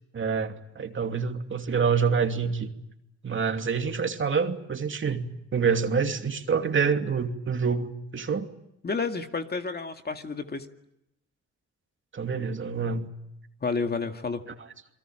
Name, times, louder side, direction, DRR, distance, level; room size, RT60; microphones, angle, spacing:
voice 1, 0.1-2.7 3.2-8.5 12.1-13.1 14.5-14.6, right 5 dB, 40° right, 6 dB, 2.7 m, -27 dB
voice 2, 8.8-10.7 13.6-14.4, left 4 dB, 30° left, 6 dB, 2.2 m, -30 dB
29.0 x 22.0 x 8.9 m, 0.84 s
cardioid pair, 90°, 30 cm